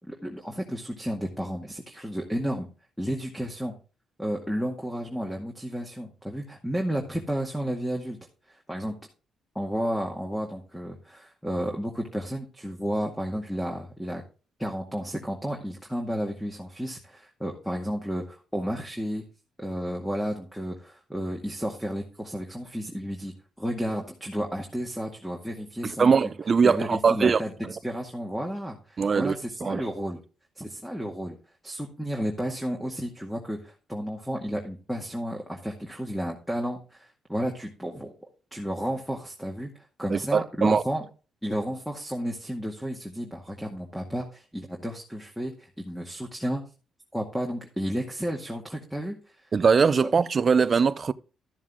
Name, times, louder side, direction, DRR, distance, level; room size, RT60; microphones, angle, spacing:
voice 1, 0.0-2.7 3.0-3.7 4.2-8.2 8.5-9.0 9.6-14.2 14.6-19.2 19.6-26.1 26.6-27.5 27.8-30.2 30.6-31.4 31.6-38.1 38.5-39.7 40.0-41.0 41.4-46.6 47.1-49.2, equal, 5° left, 2.0 m, -32 dB
voice 2, 25.8-27.7 29.0-29.3 29.6-29.8 40.1-40.8 49.5-51.1, right 5 dB, 40° right, 0.6 m, -22 dB
13.0 x 7.3 x 3.7 m
cardioid pair, 90°, 0 cm